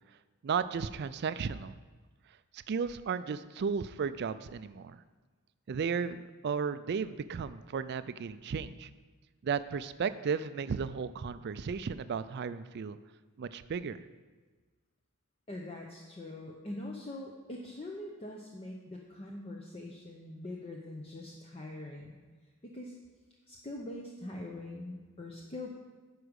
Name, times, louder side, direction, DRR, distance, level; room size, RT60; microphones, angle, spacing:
voice 1, 0.4-1.8 2.5-5.0 5.7-8.9 9.4-13.0 13.4-14.0, right 6 dB, 50° right, 13 dB, 0.4 m, -34 dB
voice 2, 15.5-22.2 22.6-22.9 23.5-25.7, left 1 dB, 25° left, 0 dB, 0.7 m, -43 dB
10.0 x 4.8 x 6.4 m, 1.3 s
head